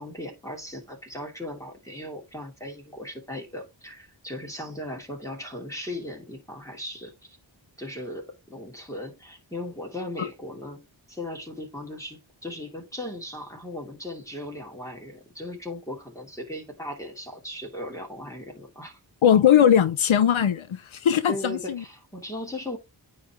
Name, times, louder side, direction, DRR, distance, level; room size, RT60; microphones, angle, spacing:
voice 1, 0.0-7.4 7.8-19.0 21.3-22.8, left 1 dB, 5° left, 2.6 m, -37 dB
voice 2, 19.2-21.8, left 9 dB, 85° left, 0.7 m, -20 dB
9.4 x 3.4 x 3.5 m
wide cardioid pair, 45°, 47 cm